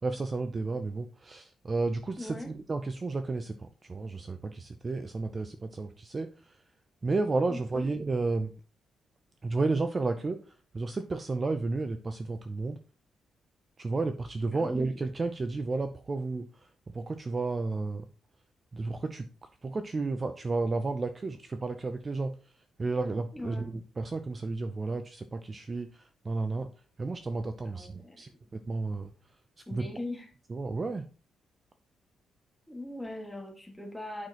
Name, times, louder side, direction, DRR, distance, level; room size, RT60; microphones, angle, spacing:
voice 1, 0.0-6.6 7.0-8.5 9.4-12.8 13.8-18.1 18.7-19.3 19.6-22.3 22.8-26.7 27.0-29.1 29.7-29.9 30.5-31.1, right 3 dB, 25° right, 8 dB, 0.5 m, -32 dB
voice 2, 2.2-2.5 7.5-7.9 14.5-14.9 23.3-23.7 27.6-28.2 29.7-30.3 32.7-34.3, left 1 dB, 5° left, 1 dB, 1.7 m, -40 dB
9.1 x 5.9 x 2.9 m, 0.35 s
cardioid pair, 135°, 0 cm